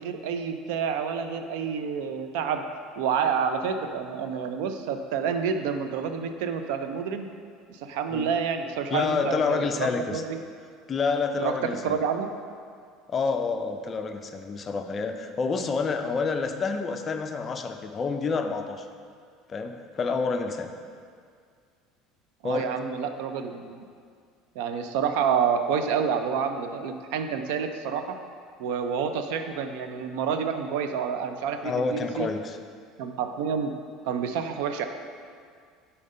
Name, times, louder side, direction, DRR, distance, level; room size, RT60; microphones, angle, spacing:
voice 1, 0.0-2.6 3.0-7.3 7.7-10.4 11.4-11.5 11.8-12.3 22.4-23.8 24.6-28.2 28.6-32.3 33.0-33.7 34.0-34.8, right 6 dB, 80° right, 7 dB, 0.4 m, -28 dB
voice 2, 8.9-10.2 10.9-12.0 13.1-18.9 19.5-20.7 22.4-22.7 31.6-32.6, left 4 dB, 25° left, 6 dB, 0.4 m, -28 dB
5.0 x 4.3 x 5.4 m, 2.1 s
cardioid pair, 145°, 0 cm